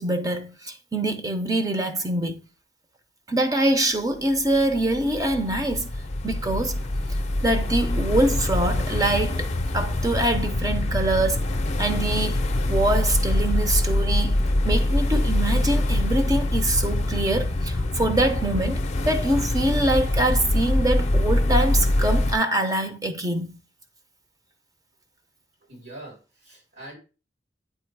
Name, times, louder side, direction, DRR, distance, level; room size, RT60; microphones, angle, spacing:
voice 1, 0.0-2.4 3.3-5.9 6.2-6.8 7.4-11.4 11.8-12.4 12.7-23.6, right 1 dB, 20° right, 0.7 m, -24 dB
sound 1, 4.3-22.3, left 1 dB, 40° left, 0.6 m, -24 dB
voice 2, 25.7-27.0, right 1 dB, 75° right, 3.1 m, -43 dB
8.5 x 2.9 x 4.7 m
head